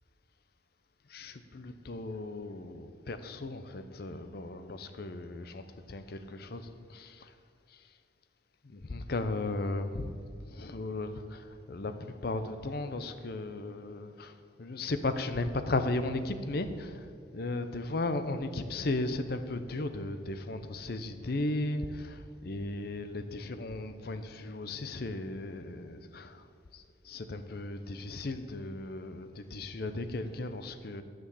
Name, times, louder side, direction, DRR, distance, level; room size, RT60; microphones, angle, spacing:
voice 1, 1.1-7.3 7.7-7.8 8.6-10.2 10.4-17.1 17.3-26.5 26.7-31.0, left 2 dB, 60° left, 0.7 m, -36 dB
9.9 x 6.2 x 7.0 m
head